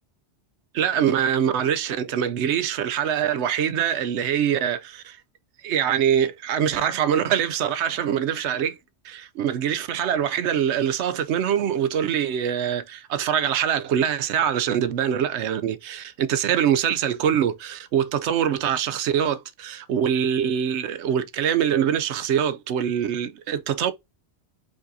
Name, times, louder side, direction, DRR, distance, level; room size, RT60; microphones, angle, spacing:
voice 1, 0.7-5.2 5.6-8.8 9.0-23.9, right 9 dB, 75° right, 0.9 m, -24 dB
5.0 x 3.6 x 2.7 m
omnidirectional pair, 1.2 m